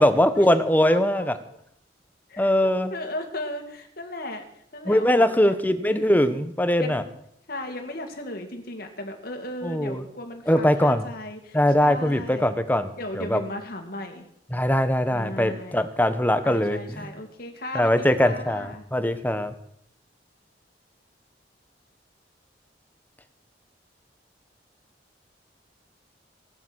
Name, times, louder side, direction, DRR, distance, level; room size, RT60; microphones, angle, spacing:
voice 1, 0.0-1.4 2.4-2.9 4.9-7.0 9.6-10.0 10.5-11.0 11.5-12.9 13.2-13.4 14.5-17.1 17.7-19.5, left 1 dB, 10° left, 11 dB, 1.1 m, -21 dB
voice 2, 0.8-1.3 2.3-2.5 2.9-4.4 4.7-5.5 5.9-6.4 6.8-7.0 7.5-12.5 13.0-14.3 15.1-15.8 16.4-18.8, left 1 dB, 55° left, 3 dB, 2.5 m, -36 dB
17.0 x 11.5 x 6.4 m, 0.72 s
head